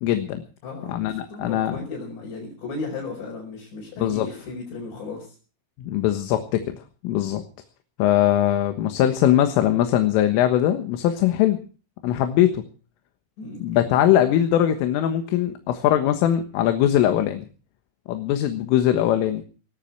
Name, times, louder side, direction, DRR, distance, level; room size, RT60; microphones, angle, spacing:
voice 1, 0.0-0.4 0.9-1.8 4.0-4.3 5.8-7.4 8.0-11.6 12.0-12.6 13.6-17.5 18.1-19.4, left 11 dB, 90° left, 7 dB, 4.0 m, -21 dB
voice 2, 0.6-5.4 13.4-13.6, left 3 dB, 60° left, -3 dB, 7.3 m, -35 dB
19.5 x 14.0 x 4.6 m, 0.38 s
omnidirectional pair, 5.6 m